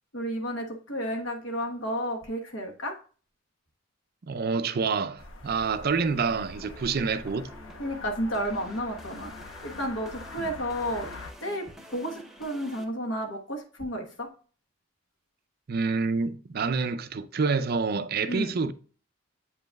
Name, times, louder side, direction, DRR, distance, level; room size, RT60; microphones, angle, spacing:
voice 1, 0.1-3.0 7.8-11.1 11.4-14.3 18.3-18.5, equal, 65° left, 1.2 m, -32 dB
voice 2, 4.2-7.5 10.4-10.5 15.7-18.7, right 5 dB, 50° right, 0.4 m, -27 dB
sound 1, 5.2-11.3, left 2 dB, 80° left, 0.8 m, -44 dB
sound 2, 6.0-12.8, equal, ahead, 0.7 m, -49 dB
8.0 x 5.2 x 2.3 m
head